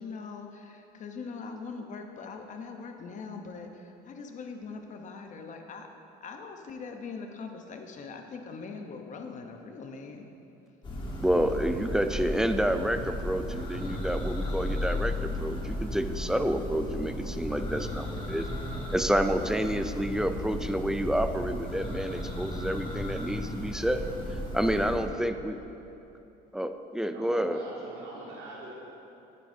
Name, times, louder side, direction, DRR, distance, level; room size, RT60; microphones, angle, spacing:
voice 1, 0.0-5.9 6.2-10.3, left 4 dB, 45° left, 4 dB, 0.8 m, -41 dB
Church bell, 10.8-25.1, left 1 dB, 30° left, 1.5 m, -35 dB
voice 2, 11.2-18.5 18.9-24.0 24.3-25.6 26.5-27.6, equal, 5° right, 8 dB, 0.3 m, -29 dB
sound 1, 21.5-22.7, equal, 45° right, 1.1 m, -48 dB
voice 3, 24.5-25.1 27.1-28.7, right 1 dB, 75° right, -5 dB, 1.8 m, -43 dB
9.9 x 8.5 x 2.7 m, 2.9 s
cardioid pair, 110°, 17 cm